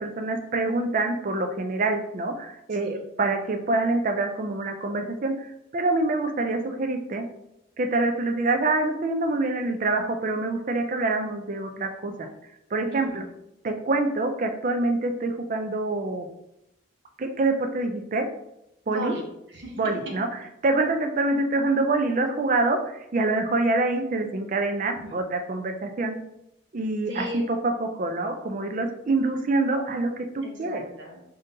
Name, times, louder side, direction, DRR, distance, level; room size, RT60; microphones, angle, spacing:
voice 1, 0.0-5.5 5.7-7.3 7.8-12.3 12.7-13.2 13.6-16.3 17.2-18.3 18.9-19.1 19.8-20.3 20.6-26.2 26.7-30.9, right 2 dB, 40° right, 5 dB, 0.4 m, -26 dB
voice 2, 12.9-13.2 18.9-20.2 24.9-25.2 27.1-27.5 30.4-31.2, equal, 65° right, 0 dB, 1.0 m, -36 dB
3.8 x 3.7 x 2.7 m, 0.83 s
head